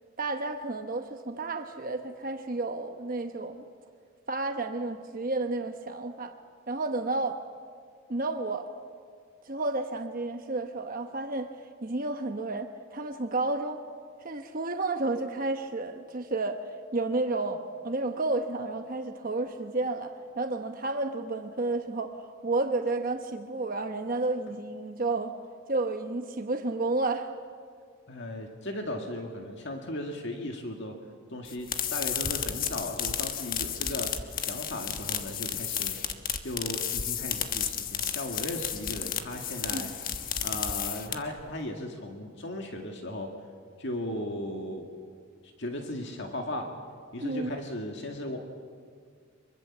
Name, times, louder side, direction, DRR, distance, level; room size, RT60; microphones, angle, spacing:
voice 1, 0.2-3.7 4.3-6.3 6.7-7.4 8.1-8.7 9.4-11.5 11.8-13.8 14.2-25.3 25.7-27.3 39.7-39.9 47.2-47.5, right 2 dB, 40° right, 6 dB, 1.0 m, -31 dB
voice 2, 28.1-31.0 31.3-35.9 36.4-39.9 40.4-43.3 43.8-44.9 45.4-46.7 47.1-48.4, left 1 dB, 60° left, 3 dB, 2.0 m, -36 dB
sound 1, 31.4-41.4, left 8 dB, 45° left, 1.3 m, -32 dB
25.0 x 23.0 x 7.3 m, 2.1 s
head